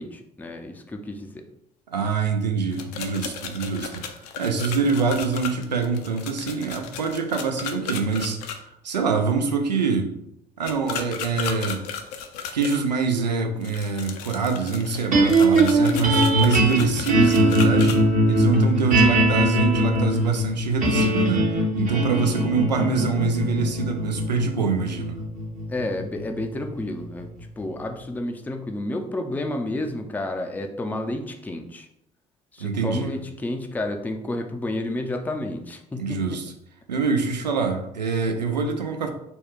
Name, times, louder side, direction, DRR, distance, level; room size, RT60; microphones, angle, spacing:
voice 1, 0.0-1.4 22.3-22.5 25.7-27.3 27.6-31.9 32.5-36.4, left 1 dB, 10° left, 4 dB, 0.4 m, -30 dB
voice 2, 1.9-4.0 4.4-10.1 10.6-11.8 12.5-25.2 32.6-33.1 36.0-36.5 36.9-39.1, right 4 dB, 85° right, 4 dB, 0.5 m, -25 dB
sound 1, 2.7-8.6 10.6-12.8 13.6-18.0, left 7 dB, 70° left, 0.5 m, -34 dB
sound 2, 15.1-27.4, right 1 dB, 40° right, 1.0 m, -21 dB
4.2 x 2.2 x 3.0 m, 0.78 s
figure-of-eight pair, 55°, 21 cm